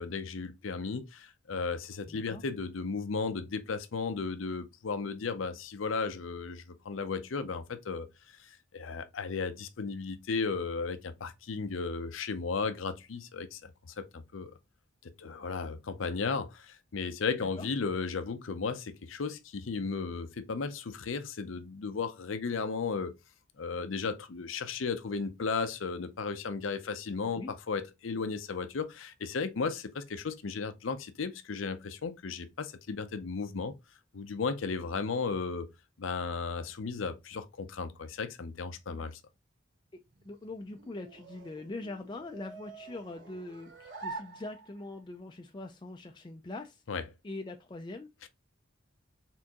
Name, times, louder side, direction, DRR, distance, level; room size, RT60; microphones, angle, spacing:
voice 1, 0.0-8.1 8.4-14.5 15.0-23.1 23.6-33.7 34.1-35.7 36.0-39.2 46.9-47.0, left 4 dB, 80° left, 0.6 m, -35 dB
voice 2, 2.1-2.4 17.4-17.7 27.4-27.5 39.9-46.8 47.2-48.1, left 2 dB, 25° left, 0.4 m, -42 dB
sound 1, 40.0-45.1, right 3 dB, 65° right, 1.3 m, -47 dB
4.3 x 3.8 x 2.9 m
head